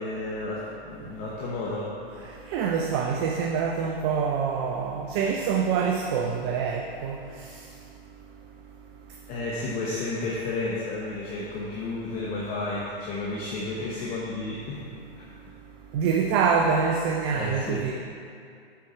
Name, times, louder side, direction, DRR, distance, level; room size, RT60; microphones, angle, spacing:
voice 1, 0.0-1.9 2.6-2.7 9.3-14.9 17.3-17.9, left 2 dB, 25° left, -5 dB, 0.9 m, -32 dB
voice 2, 2.5-7.2 15.9-17.9, right 6 dB, 25° right, 2 dB, 0.4 m, -25 dB
6.9 x 4.5 x 5.5 m, 2.3 s
hypercardioid pair, 130°, 31 cm